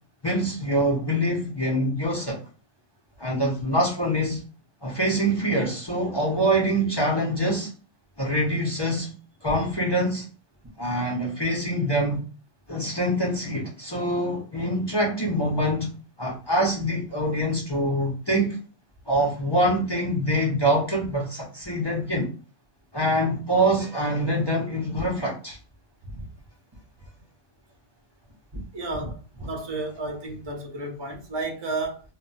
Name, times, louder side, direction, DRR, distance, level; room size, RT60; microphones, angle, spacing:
voice 1, 0.2-2.4 3.2-4.4 4.8-7.7 8.2-9.1 9.4-10.3 10.8-12.2 12.7-15.9 16.2-18.6 19.1-22.3 22.9-25.6, right 1 dB, 30° left, 0.5 m, -25 dB
voice 2, 28.7-32.0, right 2 dB, 25° right, 0.6 m, -32 dB
2.2 x 2.1 x 3.8 m
omnidirectional pair, 1.3 m